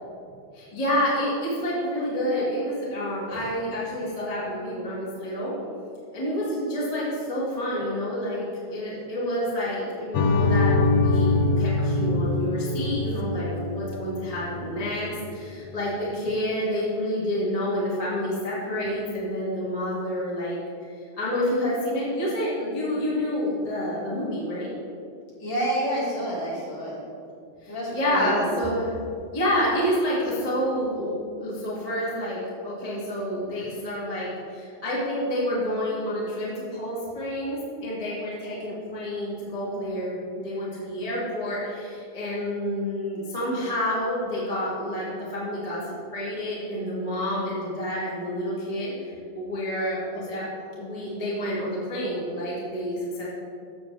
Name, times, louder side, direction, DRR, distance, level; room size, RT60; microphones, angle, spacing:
voice 1, 0.5-5.6 6.1-20.6 21.0-24.7 27.6-28.9 29.3-50.5 50.7-53.3, equal, 15° left, -8 dB, 1.4 m, -29 dB
sound 1, 10.1-15.3, left 2 dB, 80° left, 1.7 m, -24 dB
voice 2, 25.4-27.0 27.7-28.5, right 1 dB, 45° left, -7 dB, 3.3 m, -29 dB
13.0 x 7.6 x 3.4 m, 2.5 s
omnidirectional pair, 4.3 m